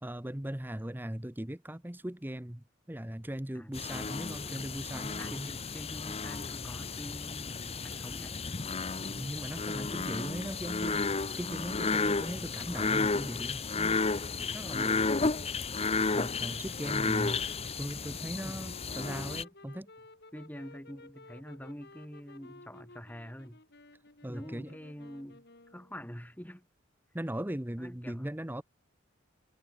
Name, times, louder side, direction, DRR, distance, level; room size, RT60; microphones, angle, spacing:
voice 1, 0.0-5.6 9.1-11.0 11.4-14.0 14.5-15.1 16.1-19.9 24.2-24.7 27.1-28.6, right 1 dB, 10° right, 0.9 m, -39 dB
sound 1, 3.7-19.4, left 4 dB, 30° left, 0.9 m, -33 dB
voice 2, 5.2-8.4 14.4-14.7 18.5-18.6 20.3-23.6 24.3-25.4 25.7-26.7 27.8-28.3, equal, 10° left, 7.7 m, -46 dB
sound 2, 16.0-26.0, left 2 dB, 55° left, 5.3 m, -55 dB
head